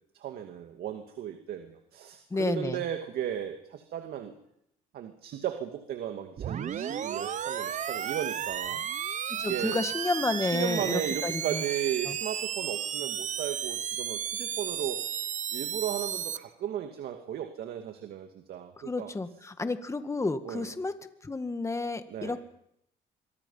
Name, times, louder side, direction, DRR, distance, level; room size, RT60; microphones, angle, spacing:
voice 1, 0.1-4.4 4.9-8.8 9.5-9.8 10.4-15.1 15.5-19.1 20.4-20.7 22.1-22.4, right 10 dB, 65° right, 5 dB, 2.3 m, -35 dB
voice 2, 2.3-2.8 9.4-11.6 12.1-12.2 18.8-20.9 21.2-22.5, left 3 dB, 15° left, 9 dB, 1.9 m, -31 dB
sound 1, 6.4-16.4, right 9 dB, 45° right, 1.1 m, -33 dB
25.5 x 24.0 x 5.7 m, 0.74 s
cardioid pair, 110°, 17 cm